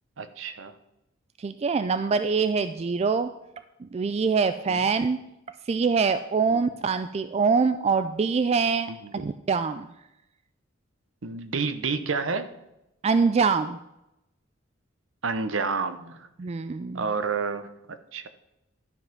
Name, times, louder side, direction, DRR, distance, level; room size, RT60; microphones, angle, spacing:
voice 1, 0.2-0.7 4.7-4.8 6.5-6.7 8.9-9.3 11.2-12.5 15.2-16.3 16.9-18.3, right 4 dB, 70° right, 10 dB, 0.8 m, -30 dB
voice 2, 1.4-3.3 3.8-5.2 5.7-8.9 9.5-9.9 13.0-13.8 16.4-17.0, right 5 dB, 30° right, 11 dB, 0.3 m, -24 dB
12.0 x 5.4 x 5.9 m, 0.88 s
head